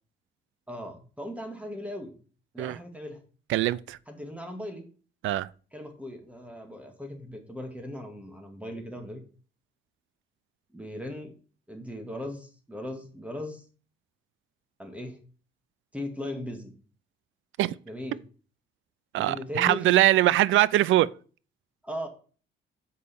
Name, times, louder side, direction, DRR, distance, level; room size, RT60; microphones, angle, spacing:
voice 1, 0.7-2.2 2.5-3.2 4.1-4.9 5.7-9.2 10.7-11.3 11.7-13.7 14.8-15.2 15.9-16.7 17.9-18.2 19.2-19.8 21.8-22.1, left 1 dB, 5° right, 2.1 m, -38 dB
voice 2, 3.5-4.0 5.2-5.5 17.6-17.7 19.1-21.1, right 15 dB, 80° right, 0.4 m, -22 dB
6.7 x 5.2 x 7.0 m
cardioid pair, 90°, 20 cm